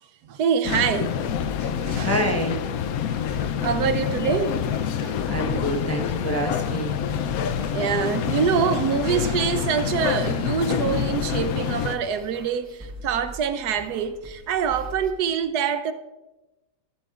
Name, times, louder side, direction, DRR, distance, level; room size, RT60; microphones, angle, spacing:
voice 1, 0.2-2.1 3.3-3.4 3.6-4.6 5.0-5.2 7.7-15.9, right 7 dB, 75° right, 1.2 m, -25 dB
sound 1, 0.6-12.0, left 8 dB, 70° left, 1.0 m, -27 dB
sound 2, 1.0-15.1, right 1 dB, 10° right, 1.0 m, -42 dB
voice 2, 2.0-2.6 5.3-7.0, right 1 dB, 10° left, 0.8 m, -27 dB
15.0 x 13.0 x 2.4 m
omnidirectional pair, 1.7 m